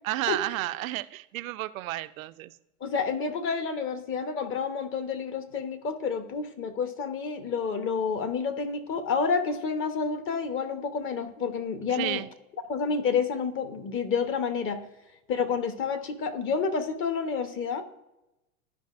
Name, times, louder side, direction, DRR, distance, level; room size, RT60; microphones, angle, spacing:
voice 1, 0.0-2.5 11.9-12.3, right 17 dB, 65° right, 13 dB, 0.6 m, -32 dB
voice 2, 2.8-12.2 12.7-14.8 15.3-17.8, left 5 dB, 30° left, 8 dB, 1.0 m, -29 dB
13.0 x 5.2 x 2.5 m, 0.94 s
hypercardioid pair, 110°, 44 cm